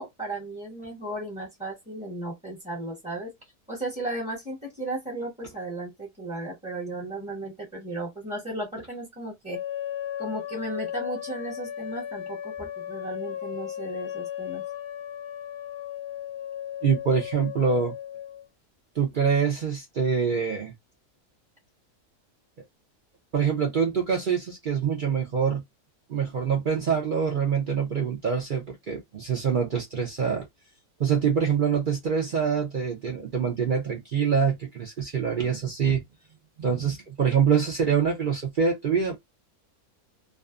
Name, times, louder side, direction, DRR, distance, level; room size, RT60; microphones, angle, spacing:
voice 1, 0.0-3.3 3.7-9.6 10.2-14.6, right 2 dB, 5° right, 0.7 m, -35 dB
sound 1, 9.5-18.5, left 11 dB, 60° left, 0.8 m, -36 dB
voice 2, 16.8-17.9 19.0-20.7 23.3-25.6 26.1-30.4 31.0-36.0 36.6-39.2, right 6 dB, 65° right, 0.5 m, -25 dB
2.5 x 2.3 x 2.3 m
omnidirectional pair, 1.6 m